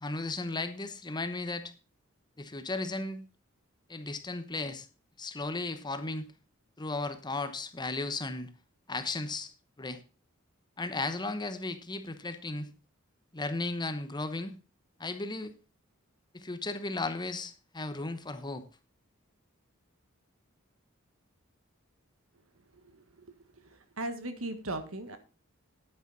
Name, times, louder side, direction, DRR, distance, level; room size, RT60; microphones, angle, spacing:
voice 1, 0.0-1.7 2.4-3.2 3.9-4.9 5.2-6.3 6.8-8.5 8.9-9.5 9.8-10.0 10.8-12.7 13.3-14.6 15.0-15.5 16.3-18.6, left 2 dB, 20° left, 10 dB, 1.0 m, -35 dB
voice 2, 22.8-23.2 23.6-25.2, right 2 dB, 85° right, 9 dB, 1.6 m, -38 dB
10.0 x 9.3 x 4.1 m, 0.34 s
head